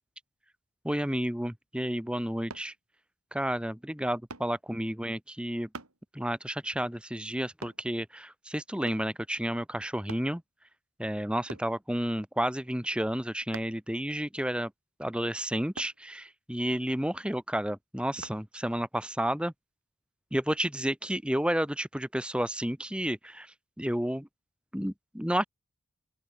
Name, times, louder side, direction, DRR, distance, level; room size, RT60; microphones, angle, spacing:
voice 1, 0.8-2.7 3.3-5.7 6.1-10.4 11.0-14.7 15.0-19.5 20.3-24.3 24.7-25.4, equal, 5° right, 1.2 m, -31 dB
sound 1, 2.5-2.7 4.3-4.5 5.7-6.0 7.6-7.8 8.9-9.1 10.1-10.3 11.5-11.7 13.5-13.8 15.7-16.0 18.2-18.4 19.0-19.1, right 3 dB, 80° right, 5.9 m, -44 dB
open air
head